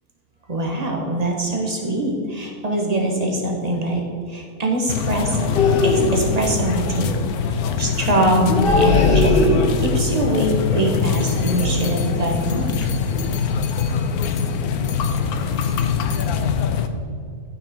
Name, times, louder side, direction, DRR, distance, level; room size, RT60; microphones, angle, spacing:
voice 1, 0.5-5.5 5.8-12.9, right 1 dB, 25° right, 1 dB, 1.5 m, -23 dB
sound 1, 4.9-16.9, left 6 dB, 80° left, 1.2 m, -23 dB
sound 2, 5.6-6.4 8.5-10.0 11.7-12.1 12.4-12.8 13.1-13.3, left 2 dB, 45° left, 0.9 m, -19 dB
12.5 x 6.0 x 4.4 m, 2.3 s
omnidirectional pair, 1.6 m